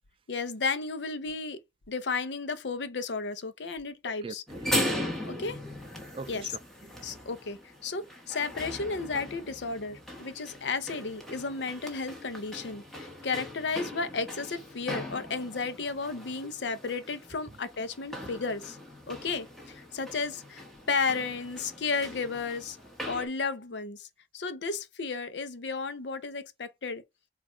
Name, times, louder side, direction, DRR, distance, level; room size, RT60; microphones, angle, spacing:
voice 1, 0.3-1.6 1.9-4.4 5.3-5.6 6.3-6.5 7.0-18.8 19.1-22.8 23.0-24.1 24.3-27.0, left 4 dB, 80° left, 0.7 m, -33 dB
voice 2, 4.1-5.2 5.7-5.8 6.1-7.0 16.4-16.5 17.5-17.6, right 3 dB, 30° right, 0.4 m, -45 dB
sound 1, 4.5-23.3, equal, 5° left, 1.2 m, -39 dB
4.3 x 2.5 x 4.3 m
head